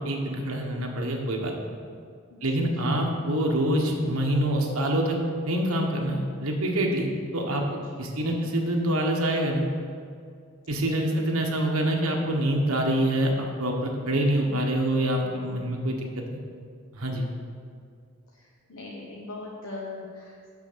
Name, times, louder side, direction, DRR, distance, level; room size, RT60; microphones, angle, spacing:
voice 1, 0.0-1.8 2.4-5.2 5.4-7.7 8.0-9.7 10.7-16.4 16.9-17.3, right 1 dB, 80° right, 1 dB, 1.3 m, -26 dB
voice 2, 2.3-2.9 7.8-8.5 11.0-11.6 14.3-14.6 18.3-20.5, left 2 dB, 80° left, -4 dB, 1.1 m, -42 dB
6.6 x 6.1 x 6.8 m, 2.3 s
head